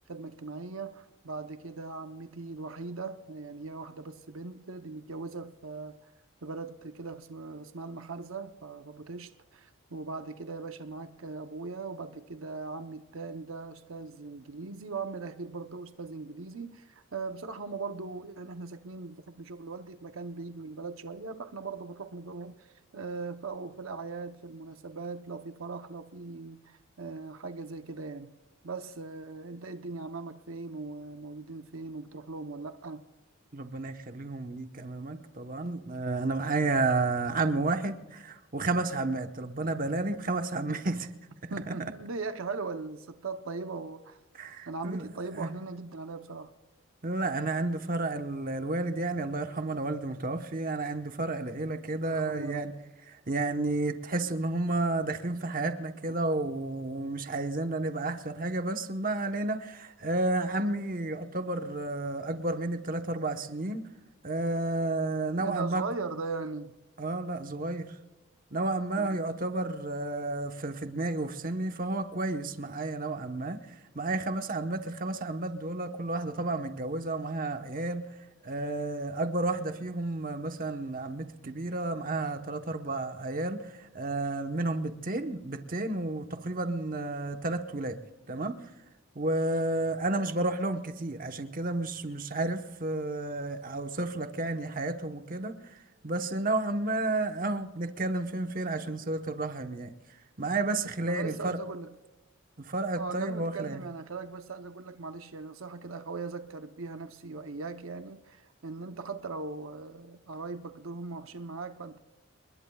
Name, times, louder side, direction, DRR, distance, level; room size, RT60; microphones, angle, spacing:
voice 1, 0.1-6.1 6.4-28.3 28.6-33.0 41.5-44.2 44.7-46.5 52.0-52.7 65.4-66.7 69.0-69.2 101.1-101.9 102.9-112.0, right 4 dB, 75° right, 8 dB, 0.8 m, -39 dB
voice 2, 33.5-41.1 41.7-41.8 44.4-45.0 45.4-45.5 47.0-52.7 53.1-63.8 64.2-65.8 67.0-67.9 68.5-73.6 73.9-78.0 78.4-88.0 88.3-88.6 89.1-95.7 96.0-99.9 100.4-101.6 102.6-103.8, right 2 dB, 40° right, 7 dB, 1.1 m, -31 dB
30.0 x 21.0 x 2.3 m, 1.1 s
head